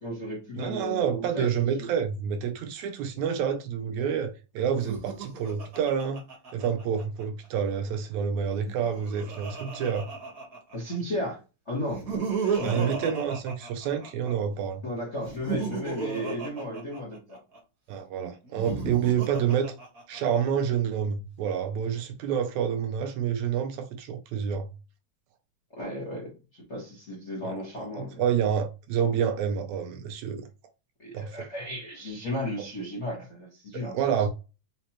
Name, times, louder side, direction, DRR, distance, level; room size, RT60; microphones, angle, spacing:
voice 1, 0.0-1.9 10.7-11.4 11.7-12.0 12.5-12.9 14.8-17.4 25.7-28.2 31.0-33.9, left 1 dB, 75° left, 0.6 m, -34 dB
voice 2, 0.6-6.2 6.5-10.1 12.6-14.8 17.9-19.7 20.1-24.7 27.4-30.5 31.1-31.4 33.7-34.3, right 8 dB, 80° right, 1.8 m, -28 dB
Laughter, 4.7-7.2 8.5-10.9 11.8-14.3 15.2-17.6 18.4-20.4, right 5 dB, 55° right, 1.0 m, -34 dB
5.0 x 2.0 x 2.9 m
omnidirectional pair, 3.4 m